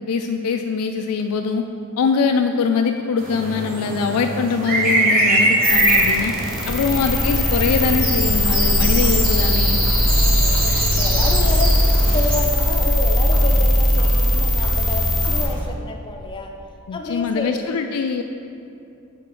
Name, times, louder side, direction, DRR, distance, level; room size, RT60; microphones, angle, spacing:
voice 1, 0.1-1.6 2.0-6.3 6.7-9.8 16.9-18.2, left 5 dB, 85° left, 5 dB, 0.3 m, -22 dB
sound 1, 3.2-12.4, right 2 dB, 40° right, 1.1 m, -23 dB
sound 2, 5.6-15.5, left 1 dB, ahead, 1.0 m, -19 dB
sound 3, 5.9-15.6, equal, 65° right, 1.2 m, -35 dB
voice 2, 8.7-9.0 10.1-16.5 16.9-17.8, left 2 dB, 20° left, 2 dB, 0.6 m, -30 dB
5.7 x 4.3 x 6.2 m, 2.5 s
head